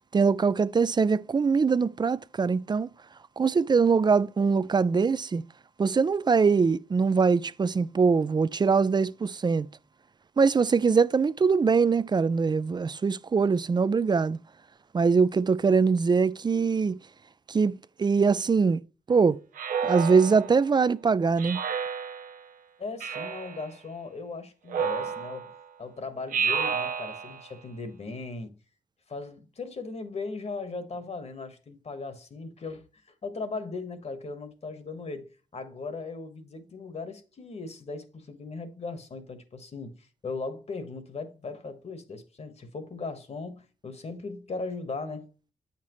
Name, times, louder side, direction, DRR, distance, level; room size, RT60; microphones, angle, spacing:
voice 1, 0.1-2.9 3.4-5.4 5.8-9.7 10.4-14.4 14.9-17.0 17.5-17.7 18.0-18.8 19.1-19.4 19.8-21.6, right 5 dB, 30° right, 0.4 m, -23 dB
Speech synthesizer, 19.6-20.7 21.4-22.4 23.0-23.7 24.7-25.6 26.3-27.5, right 6 dB, 75° right, 0.7 m, -31 dB
voice 2, 22.8-25.5 25.8-28.5 29.1-32.8 33.2-45.3, left 3 dB, 50° left, 1.4 m, -38 dB
8.4 x 5.8 x 3.1 m
supercardioid pair, 50°, 14 cm